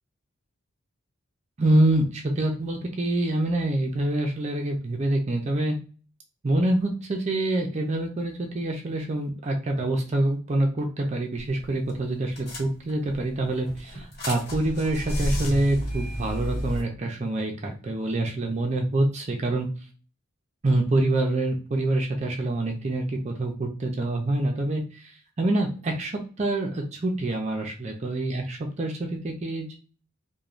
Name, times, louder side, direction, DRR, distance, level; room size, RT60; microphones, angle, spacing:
voice 1, 1.6-5.8 6.4-19.7 20.6-29.8, right 1 dB, 35° right, 1 dB, 0.4 m, -26 dB
sound 1, 11.4-11.6 11.9-12.0 12.4-13.1 13.6-16.8, equal, 50° left, 1.4 m, -31 dB
3.0 x 2.2 x 2.4 m, 0.37 s
head